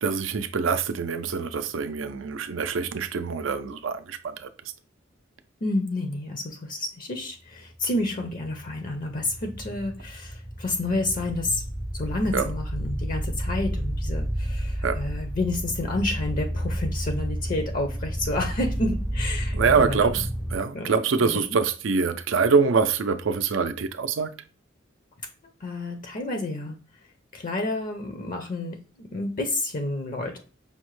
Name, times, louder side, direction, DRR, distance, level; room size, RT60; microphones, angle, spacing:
voice 1, 0.0-4.5 12.3-12.5 14.8-15.0 19.5-24.3, right 5 dB, 75° right, 0.4 m, -24 dB
voice 2, 5.6-11.6 11.9-20.1 20.7-21.3 25.6-26.8 27.3-30.4, left 2 dB, 45° left, 0.6 m, -30 dB
sound 1, 7.8-20.6, equal, 5° right, 0.3 m, -31 dB
5.6 x 2.1 x 3.0 m
head